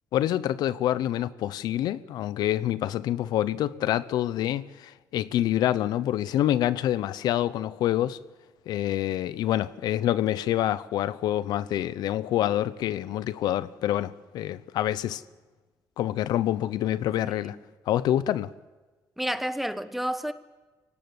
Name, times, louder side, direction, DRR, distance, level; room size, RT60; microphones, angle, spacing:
voice 1, 0.1-8.2 8.7-15.2 16.0-17.6 17.9-18.5, left 12 dB, 80° left, 0.7 m, -27 dB
voice 2, 17.2-17.5 19.2-20.3, equal, ahead, 1.0 m, -30 dB
24.0 x 18.0 x 8.1 m
cardioid pair, 120°, 7 cm